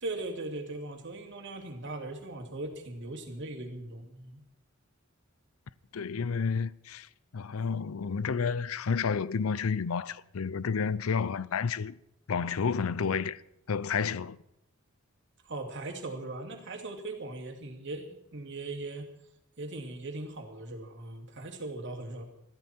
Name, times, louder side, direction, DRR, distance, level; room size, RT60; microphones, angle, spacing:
voice 1, 0.0-4.4 15.4-19.1 19.6-22.2, right 2 dB, 60° right, 2.8 m, -39 dB
voice 2, 5.9-7.1 7.3-12.0 12.3-13.4 13.7-14.4, left 5 dB, 85° left, 0.5 m, -30 dB
22.0 x 14.5 x 4.4 m
head